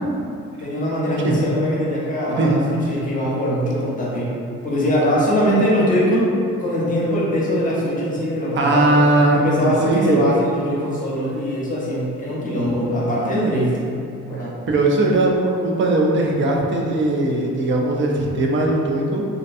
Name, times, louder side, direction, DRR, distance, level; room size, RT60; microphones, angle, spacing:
voice 1, 0.6-4.3 4.6-6.3 6.6-9.0 9.3-13.8 14.2-14.6, equal, 25° left, -6 dB, 0.8 m, -22 dB
voice 2, 8.6-10.3 14.7-19.3, right 2 dB, 40° right, 0 dB, 0.5 m, -19 dB
2.6 x 2.2 x 2.5 m, 2.4 s
cardioid pair, 90°, 30 cm